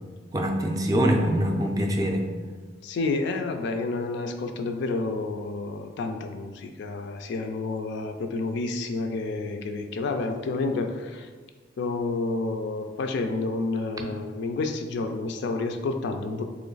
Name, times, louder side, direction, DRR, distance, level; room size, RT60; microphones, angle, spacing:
voice 1, 0.3-2.3 14.0-14.1, equal, 20° right, 2 dB, 0.4 m, -24 dB
voice 2, 2.8-11.3 11.8-16.4, left 3 dB, 65° left, 6 dB, 0.4 m, -29 dB
3.0 x 3.0 x 3.9 m, 1.4 s
head